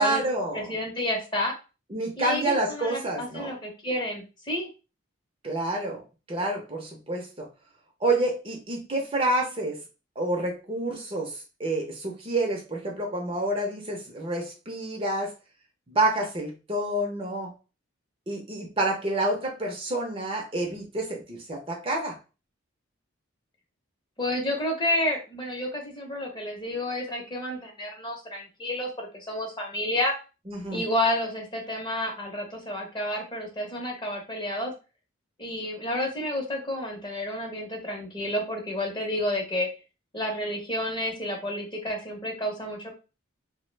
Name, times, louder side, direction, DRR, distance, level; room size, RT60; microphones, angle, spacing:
voice 1, 0.0-0.7 1.9-3.5 5.4-6.0 6.3-7.5 8.0-9.8 10.2-15.3 15.9-17.5 18.3-22.2 30.5-30.8, right 2 dB, 25° right, 1 dB, 0.5 m, -28 dB
voice 2, 0.5-1.5 2.2-4.7 24.2-30.1 30.7-34.7 35.4-39.7 40.1-42.9, left 1 dB, 20° left, 1 dB, 0.6 m, -30 dB
2.9 x 2.0 x 3.1 m, 0.32 s
head